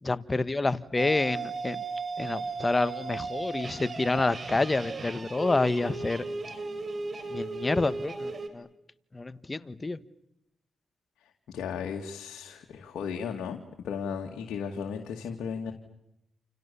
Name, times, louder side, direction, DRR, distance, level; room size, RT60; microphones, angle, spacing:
voice 1, 0.0-1.8 2.2-6.2 7.3-8.7 9.1-10.0, left 3 dB, 30° left, 14 dB, 1.5 m, -28 dB
sound 1, 1.0-8.5, right 4 dB, 50° right, 4.6 m, -36 dB
voice 2, 11.2-15.7, left 6 dB, 85° left, 2 dB, 2.3 m, -35 dB
29.0 x 28.5 x 7.1 m, 0.83 s
cardioid pair, 55°, 0 cm